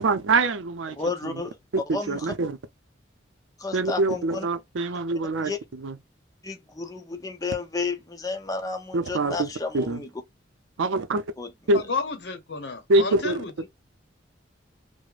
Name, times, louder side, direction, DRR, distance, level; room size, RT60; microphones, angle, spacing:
voice 1, 0.0-1.0 1.2-1.4 1.7-2.6 3.7-6.0 8.9-10.0 10.8-11.2 11.7-11.8 12.9-13.4, right 2 dB, 90° right, 0.5 m, -25 dB
voice 2, 1.0-1.5 1.9-2.2 3.6-4.5 5.4-5.6 6.4-10.1 11.4-11.5, left 4 dB, 20° left, 0.6 m, -32 dB
voice 3, 11.7-13.7, left 4 dB, 65° left, 0.7 m, -31 dB
4.7 x 2.1 x 2.4 m
head